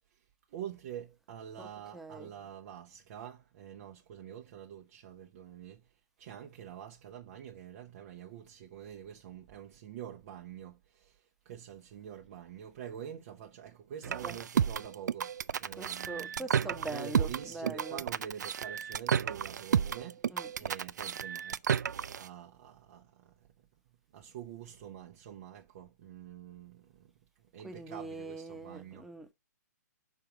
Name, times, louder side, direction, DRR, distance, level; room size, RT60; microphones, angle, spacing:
voice 1, 0.1-5.9 6.2-23.5 24.1-27.1 27.5-29.1, right 9 dB, 45° right, 1.0 m, -46 dB
voice 2, 1.9-2.3 14.2-14.3 15.8-18.0 20.3-20.5 27.6-29.3, right 2 dB, 5° right, 1.1 m, -42 dB
sound 1, 14.0-22.3, right 8 dB, 70° right, 0.4 m, -32 dB
5.8 x 4.8 x 5.0 m
hypercardioid pair, 130°, 10 cm